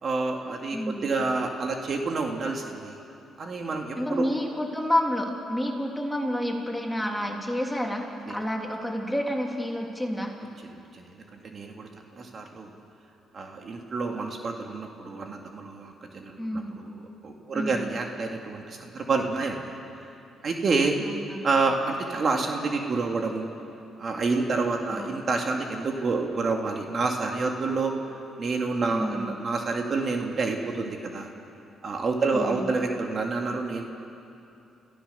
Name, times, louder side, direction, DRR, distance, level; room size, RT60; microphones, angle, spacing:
voice 1, 0.0-3.0 3.4-4.3 8.3-8.4 10.9-12.7 13.3-19.6 20.4-21.0 21.4-23.5 24.0-27.9 28.4-31.3 31.8-33.8, right 3 dB, 45° right, 2 dB, 2.2 m, -28 dB
voice 2, 0.7-1.0 3.9-10.3 16.4-16.7 17.5-17.9 21.1-21.4 24.9-25.1 28.9-29.3 32.3-32.8, equal, 5° left, 0 dB, 3.1 m, -29 dB
29.5 x 15.0 x 6.9 m, 2.7 s
cardioid pair, 90°, 0 cm